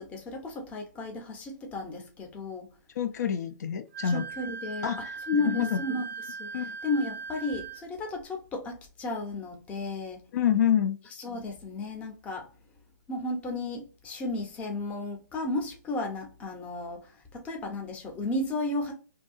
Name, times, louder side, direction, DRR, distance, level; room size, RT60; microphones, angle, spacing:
voice 1, 0.0-2.7 4.0-10.2 11.2-12.5 13.1-18.9, left 2 dB, 15° left, 0.6 m, -34 dB
voice 2, 3.0-4.2 4.8-5.2 5.4-5.8 6.5-6.7 10.3-11.0, left 9 dB, 60° left, 0.4 m, -27 dB
Wind instrument woodwind instrument, 3.9-7.8, right 5 dB, 35° right, 0.6 m, -39 dB
2.7 x 2.2 x 2.4 m
hypercardioid pair, 150°, 10 cm